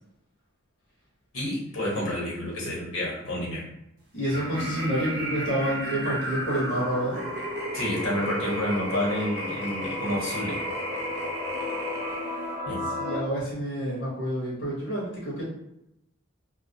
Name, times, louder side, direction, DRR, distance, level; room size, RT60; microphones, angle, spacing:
voice 1, 1.3-3.7 7.7-10.7 12.7-12.9, left 1 dB, 85° left, -4 dB, 1.0 m, -29 dB
voice 2, 4.1-7.2 13.0-15.4, equal, 55° left, -8 dB, 0.8 m, -28 dB
sound 1, 4.2-12.6, equal, 50° right, 0.6 m, -33 dB
sound 2, 7.7-13.2, left 2 dB, 25° left, 0.6 m, -37 dB
2.3 x 2.1 x 2.6 m, 0.83 s
head